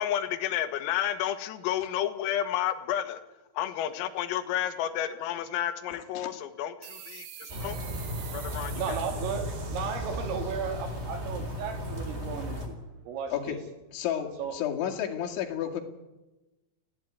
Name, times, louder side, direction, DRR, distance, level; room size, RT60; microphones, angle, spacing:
voice 1, 0.0-3.2 3.6-7.8 8.3-9.0, left 11 dB, 90° left, 10 dB, 4.2 m, -31 dB
voice 2, 5.9-6.3 13.3-13.6 13.9-15.8, left 10 dB, 65° left, 1 dB, 4.5 m, -32 dB
sound 1, 6.8-12.0, right 9 dB, 55° right, 2.9 m, -47 dB
sound 2, 7.5-12.7, equal, 15° right, 3.3 m, -35 dB
voice 3, 8.8-12.8 13.1-13.6 14.4-14.6, right 6 dB, 75° right, 7 dB, 5.4 m, -35 dB
28.5 x 17.0 x 9.5 m, 1.1 s
omnidirectional pair, 6.0 m